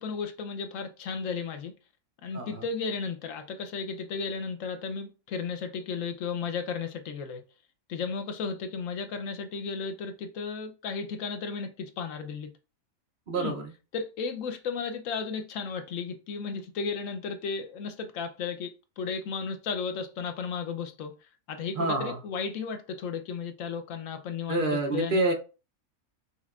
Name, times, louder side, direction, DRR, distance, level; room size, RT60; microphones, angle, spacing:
voice 1, 0.0-1.7 2.2-7.4 7.9-12.5 13.4-13.5 13.9-21.1 21.5-25.2, left 5 dB, 70° left, 0.9 m, -34 dB
voice 2, 13.3-13.7 21.8-22.2 24.5-25.3, right 2 dB, 50° right, 0.6 m, -27 dB
5.6 x 2.9 x 2.4 m
omnidirectional pair, 1.5 m